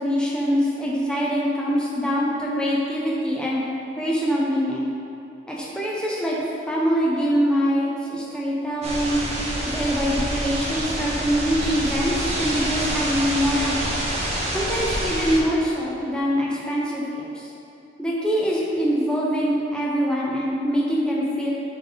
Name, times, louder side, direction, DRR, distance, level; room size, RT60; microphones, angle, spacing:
voice 1, 0.0-3.6 4.0-4.9 5.5-6.4 6.7-9.2 9.7-14.0 14.5-17.5 18.0-21.5, equal, 5° left, -5 dB, 0.8 m, -24 dB
sound 1, 8.8-15.4, right 1 dB, 35° right, 0.9 m, -27 dB
7.0 x 3.5 x 4.1 m, 2.7 s
head